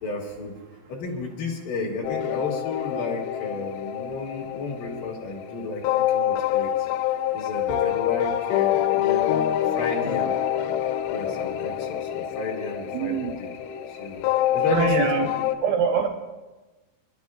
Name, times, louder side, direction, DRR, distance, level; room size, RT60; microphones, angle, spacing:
voice 1, 0.0-0.5 0.9-6.7 7.3-10.4 11.1-14.2 14.5-15.1, left 3 dB, 55° left, -2 dB, 3.4 m, -33 dB
sound 1, 2.0-15.6, left 11 dB, 90° left, 2.9 m, -26 dB
voice 2, 12.9-13.4 14.7-16.1, right 7 dB, 75° right, 3 dB, 2.5 m, -25 dB
29.0 x 12.5 x 2.4 m, 1.2 s
omnidirectional pair, 5.0 m